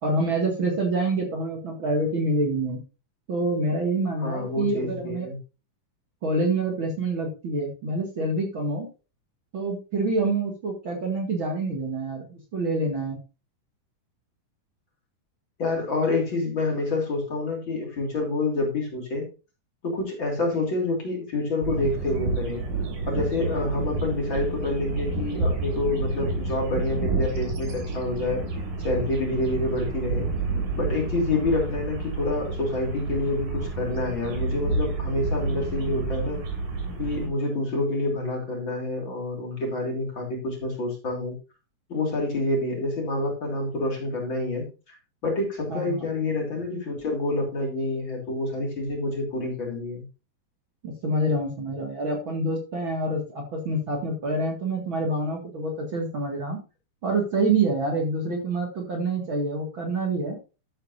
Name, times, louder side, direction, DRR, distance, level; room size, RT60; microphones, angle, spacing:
voice 1, 0.0-2.8 3.3-5.3 6.2-8.9 9.5-13.2 45.7-46.0 50.8-56.6 57.0-60.4, right 2 dB, 40° right, 1 dB, 2.4 m, -27 dB
voice 2, 4.2-5.4 15.6-19.3 19.8-22.6 23.1-28.4 28.8-30.3 30.7-36.4 37.0-41.3 41.9-44.9 45.2-50.0, left 2 dB, 35° left, 0 dB, 3.8 m, -27 dB
sound 1, 21.6-37.3, right 3 dB, 85° right, 4.7 m, -29 dB
13.0 x 8.2 x 2.7 m, 0.31 s
omnidirectional pair, 3.9 m